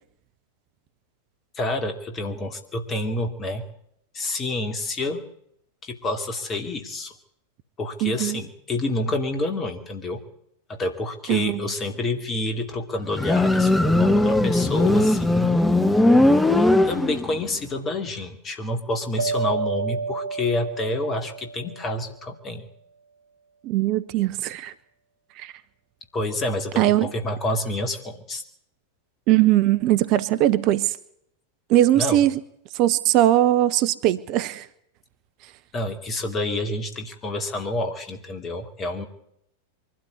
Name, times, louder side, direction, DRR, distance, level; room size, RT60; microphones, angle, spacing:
voice 1, 1.5-3.6 4.1-5.2 5.8-7.1 7.8-10.2 10.7-15.5 16.8-22.7 26.1-28.4 31.9-32.2 35.7-39.1, left 2 dB, 25° left, 6 dB, 2.7 m, -28 dB
voice 2, 8.0-8.4 11.3-11.7 23.6-24.7 25.4-25.5 26.8-27.1 29.3-31.0 31.7-32.3 32.7-34.7, right 14 dB, 40° right, 13 dB, 0.9 m, -20 dB
Motorcycle, 13.1-17.5, left 2 dB, 5° left, 1.2 m, -19 dB
sound 1, 19.2-22.2, right 4 dB, 80° right, 1.7 m, -30 dB
23.5 x 12.5 x 9.7 m, 0.73 s
figure-of-eight pair, 90°, 0 cm